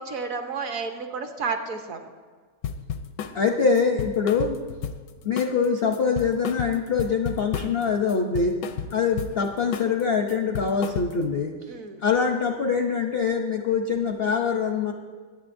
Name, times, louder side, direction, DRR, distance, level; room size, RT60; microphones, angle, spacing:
voice 1, 0.0-2.1 11.7-12.0, right 4 dB, 60° right, 5 dB, 1.1 m, -31 dB
sound 1, 2.6-3.4 3.8-5.1 5.4-5.7 5.9-7.8 8.1-9.4 9.7-10.0 10.3-11.3, left 7 dB, 85° left, 1.3 m, -32 dB
voice 2, 3.3-4.6 5.2-8.6 8.9-11.6 12.0-14.9, left 5 dB, 60° left, 4 dB, 0.6 m, -24 dB
22.5 x 9.0 x 2.6 m, 1.5 s
omnidirectional pair, 1.9 m